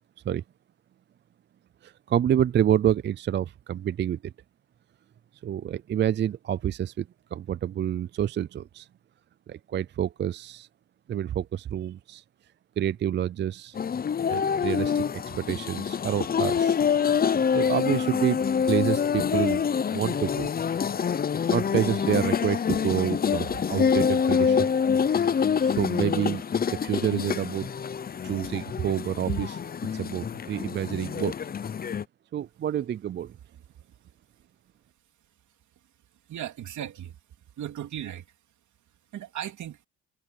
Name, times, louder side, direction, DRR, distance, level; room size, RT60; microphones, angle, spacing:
voice 1, 1.8-4.3 5.4-8.9 9.5-10.7 11.1-12.2 12.8-13.8 14.3-16.8 17.5-18.4 18.7-19.6 19.9-20.5 21.5-24.7 25.3-26.4 26.7-27.7 28.2-29.6 29.9-31.4 32.3-33.3, right 10 dB, 40° right, 0.4 m, -28 dB
sound 1, 13.8-32.0, left 7 dB, 30° left, 0.6 m, -26 dB
voice 2, 36.3-37.2 37.6-38.3 39.1-39.8, right 11 dB, 70° right, 3.2 m, -36 dB
cardioid pair, 90°, 30 cm